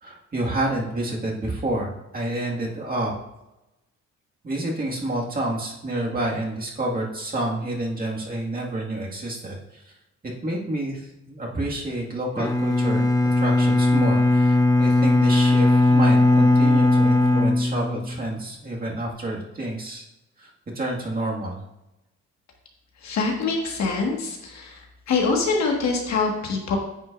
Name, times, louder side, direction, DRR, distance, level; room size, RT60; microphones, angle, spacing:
voice 1, 0.0-3.1 4.4-9.8 10.2-13.1 13.4-20.0 20.4-20.5 20.8-21.6, right 1 dB, 30° right, -2 dB, 2.0 m, -29 dB
Bowed string instrument, 12.4-18.4, left 2 dB, 10° left, 0.8 m, -18 dB
voice 2, 23.0-24.8 25.1-26.8, left 4 dB, 65° left, 0 dB, 1.8 m, -24 dB
9.4 x 6.3 x 2.6 m, 0.93 s
cardioid pair, 90°, 30 cm